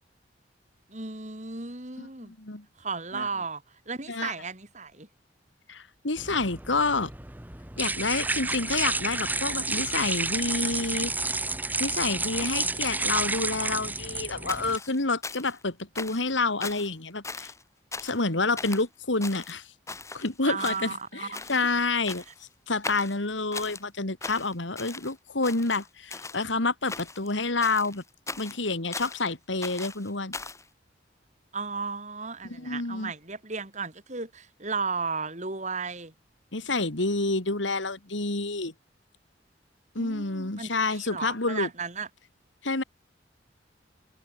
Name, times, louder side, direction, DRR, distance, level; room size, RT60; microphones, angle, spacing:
voice 1, 0.9-2.3 2.8-5.1 20.4-21.5 31.5-36.1 40.0-42.1, right 4 dB, 40° right, 3.8 m, -34 dB
voice 2, 2.0-2.6 3.1-3.3 4.1-4.3 5.7-7.1 7.8-11.1 11.8-17.5 18.0-19.7 20.1-22.2 22.7-28.0 28.4-30.3 32.4-33.1 36.5-38.7 39.9-41.7 42.6-42.8, left 3 dB, 85° left, 2.7 m, -28 dB
sound 1, 6.2-14.8, right 3 dB, 10° right, 1.1 m, -30 dB
sound 2, 14.5-15.6 16.0-16.3 16.6-16.9 17.2-17.6 17.9-18.3 18.6-18.9 19.2-20.3 20.6-21.1 21.3-21.6 22.1-22.4 22.8-23.8 24.2-25.1 25.4-26.5 26.9-27.3 27.6-29.3 29.6-30.6, left 3 dB, 15° left, 2.8 m, -39 dB
head